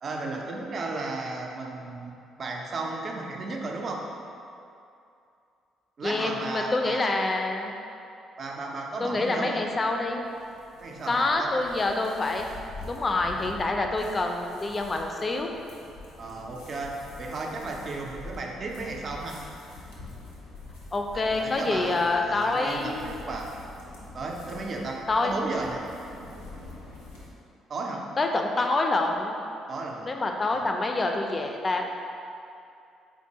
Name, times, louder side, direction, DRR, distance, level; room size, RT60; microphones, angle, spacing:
voice 1, 0.0-4.0 6.0-7.0 8.4-9.6 10.8-11.5 16.2-19.4 21.1-23.5 24.1-25.8 27.7-28.0 29.7-30.1 30.5-30.7, right 3 dB, 45° right, 0 dB, 0.4 m, -34 dB
voice 2, 6.0-7.7 9.0-10.2 11.1-12.5 12.8-15.5 20.9-23.1 25.1-25.4 28.2-29.4 30.0-31.9, left 2 dB, 30° left, 3 dB, 0.4 m, -26 dB
sound 1, 9.6-27.3, left 2 dB, 80° left, 0.6 m, -46 dB
4.3 x 2.6 x 2.7 m, 2.6 s
figure-of-eight pair, 45°, 0 cm